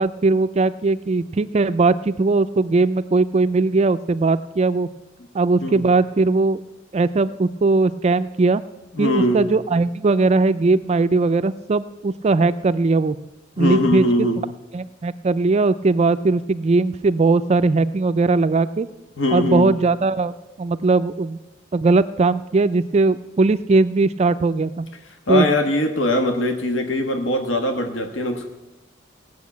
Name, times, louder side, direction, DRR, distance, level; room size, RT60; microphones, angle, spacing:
voice 1, 0.0-4.9 5.3-6.6 6.9-8.6 9.0-13.2 13.6-14.1 14.7-18.9 19.3-21.4 21.7-24.9 25.3-25.4, right 3 dB, 35° right, 13 dB, 0.4 m, -19 dB
voice 2, 8.9-9.4 13.6-14.4 19.2-19.7 25.3-28.5, left 1 dB, 75° left, 5 dB, 1.4 m, -21 dB
18.0 x 6.3 x 8.4 m, 1.1 s
head